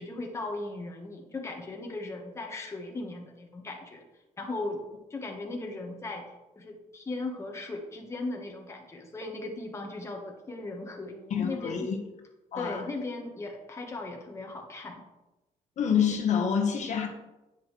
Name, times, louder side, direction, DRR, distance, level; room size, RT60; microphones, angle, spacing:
voice 1, 0.0-4.0 4.4-4.8 5.1-6.3 6.5-11.9 12.6-15.0, left 2 dB, 20° left, 1 dB, 1.5 m, -37 dB
voice 2, 11.3-12.0 12.5-12.8 15.8-17.1, left 7 dB, 60° left, 3 dB, 1.4 m, -27 dB
10.0 x 8.7 x 3.3 m, 0.99 s
cardioid pair, 135°, 14 cm